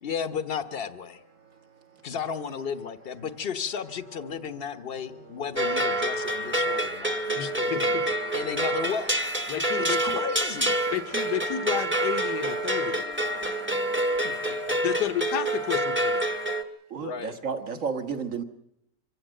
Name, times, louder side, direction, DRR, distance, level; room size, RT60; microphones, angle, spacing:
voice 1, 0.0-1.2 2.0-9.2 9.8-10.7 14.0-14.5 16.9-17.4, left 6 dB, 40° left, 1.0 m, -34 dB
sound 1, 1.0-15.1, right 1 dB, 85° right, 5.8 m, -50 dB
sound 2, 5.6-16.6, right 1 dB, 10° right, 1.1 m, -27 dB
voice 2, 7.4-8.0 9.5-10.2 10.9-13.0 14.8-16.3, left 10 dB, 75° left, 1.8 m, -31 dB
voice 3, 16.9-18.4, right 6 dB, 50° right, 1.8 m, -31 dB
25.0 x 16.5 x 7.7 m
omnidirectional pair, 1.8 m